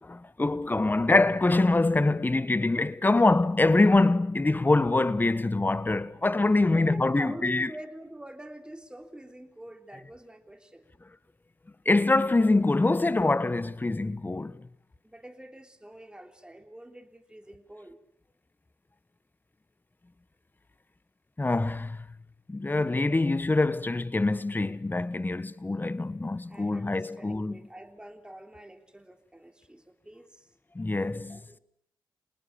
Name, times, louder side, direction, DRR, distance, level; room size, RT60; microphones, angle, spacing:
voice 1, 0.0-7.7 11.8-14.6 21.4-22.1 22.5-27.6 30.7-31.4, left 2 dB, 25° left, 1.2 m, -24 dB
voice 2, 6.7-10.9 15.0-18.0 26.5-30.5 31.3-31.6, right 1 dB, 10° right, 3.3 m, -46 dB
27.5 x 19.5 x 7.2 m
supercardioid pair, 45°, 8 cm